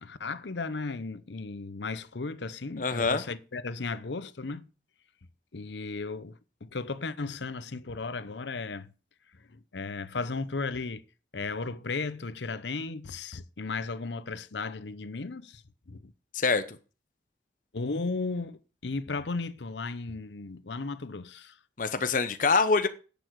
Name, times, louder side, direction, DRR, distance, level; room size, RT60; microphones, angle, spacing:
voice 1, 0.0-4.7 5.5-8.9 9.5-11.0 11.3-16.1 17.7-21.6, left 3 dB, 80° left, 0.8 m, -35 dB
voice 2, 2.8-3.2 16.3-16.6 21.8-22.9, left 4 dB, 45° left, 0.8 m, -25 dB
10.0 x 7.0 x 4.6 m
head